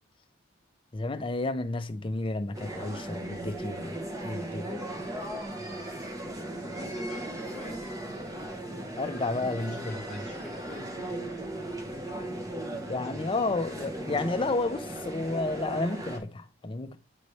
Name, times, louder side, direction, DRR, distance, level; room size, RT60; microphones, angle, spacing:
voice 1, 0.9-4.0 4.2-4.7 9.0-9.9 12.9-17.0, left 2 dB, 30° left, 0.5 m, -31 dB
sound 1, 2.5-16.2, right 1 dB, 20° right, 1.0 m, -37 dB
voice 2, 6.0-6.4 6.7-8.0 9.5-11.0, left 2 dB, 5° left, 1.5 m, -47 dB
9.2 x 4.1 x 3.2 m
head